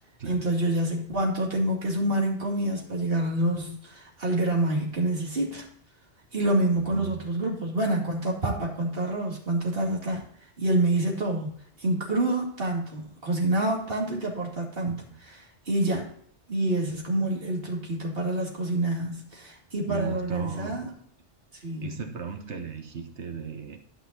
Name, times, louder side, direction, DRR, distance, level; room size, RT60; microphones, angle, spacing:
voice 1, 0.3-5.7 6.3-10.2 10.6-11.5 11.8-15.0 15.7-16.1 16.5-20.9 21.6-22.0, right 1 dB, 55° right, -2 dB, 2.7 m, -27 dB
voice 2, 6.8-7.2 14.9-15.2 19.9-21.0 21.8-23.8, right 6 dB, 75° right, 6 dB, 1.5 m, -36 dB
12.0 x 5.7 x 4.1 m, 0.67 s
omnidirectional pair, 1.2 m